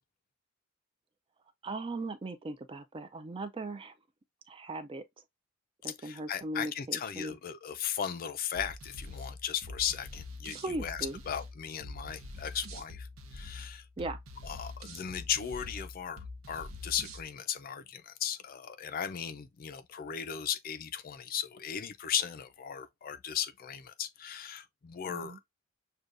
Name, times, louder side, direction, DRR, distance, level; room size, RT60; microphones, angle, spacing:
voice 1, 1.6-3.9 4.5-5.0 5.8-7.4 10.6-11.2 14.0-14.2 25.1-25.4, right 2 dB, 25° right, 0.4 m, -38 dB
voice 2, 5.8-13.8 14.4-25.4, left 8 dB, 45° left, 0.4 m, -37 dB
sound 1, 8.5-17.3, left 2 dB, 80° right, 0.8 m, -45 dB
6.6 x 2.3 x 2.4 m
head